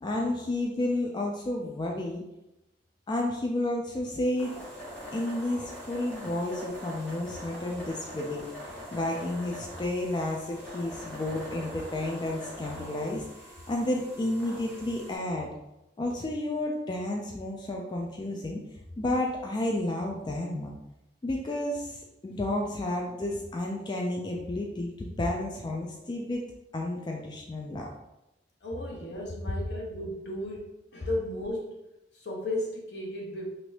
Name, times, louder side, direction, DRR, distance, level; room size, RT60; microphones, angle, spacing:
voice 1, 0.0-2.2 3.1-4.5 5.1-13.2 13.7-15.5 16.0-18.6 19.0-20.7 21.2-26.4 26.7-27.9, left 1 dB, 25° left, -1 dB, 0.3 m, -31 dB
sound 1, 4.4-15.2, equal, 5° left, 0.9 m, -43 dB
voice 2, 28.6-31.8 32.1-33.5, left 1 dB, 70° left, -2 dB, 0.9 m, -35 dB
2.8 x 2.5 x 3.1 m, 0.91 s
head